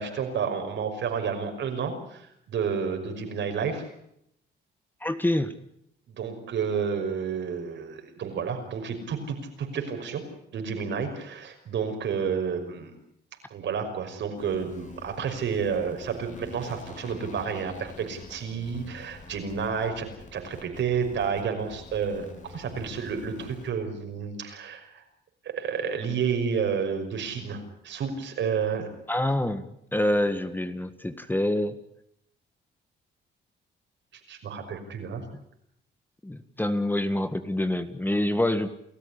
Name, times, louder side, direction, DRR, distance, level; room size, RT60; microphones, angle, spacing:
voice 1, 0.0-3.9 6.1-10.2 10.5-12.9 13.5-25.0 25.4-28.9 34.3-35.2, right 6 dB, 70° right, 5 dB, 5.7 m, -30 dB
voice 2, 5.0-5.5 29.1-31.8 35.3-35.4 36.2-38.7, left 1 dB, 10° left, 11 dB, 1.6 m, -26 dB
sound 1, 14.3-23.7, left 4 dB, 40° left, 4.1 m, -47 dB
29.5 x 14.0 x 10.0 m, 0.76 s
cardioid pair, 90°, 20 cm